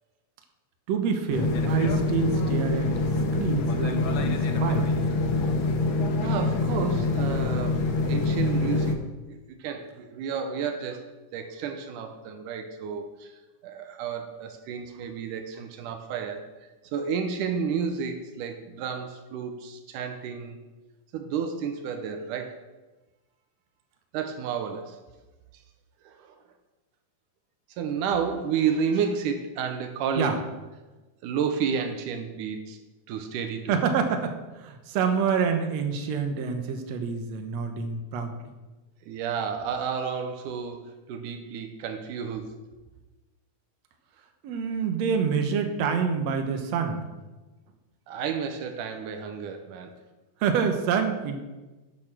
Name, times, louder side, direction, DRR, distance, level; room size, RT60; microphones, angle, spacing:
voice 1, 0.9-2.9 3.3-4.9 30.2-30.3 33.7-38.3 44.4-47.0 50.4-51.4, right 6 dB, 65° right, 5 dB, 2.2 m, -27 dB
sound 1, 1.3-8.9, left 3 dB, 65° left, 1.2 m, -25 dB
voice 2, 6.2-20.6 21.1-22.6 24.1-25.0 25.5-25.6 26.0-26.4 27.7-30.5 31.2-32.8 33.1-33.8 39.0-42.6 48.1-49.9, right 6 dB, 85° right, 6 dB, 2.4 m, -31 dB
11.0 x 8.9 x 6.1 m, 1.2 s
omnidirectional pair, 3.6 m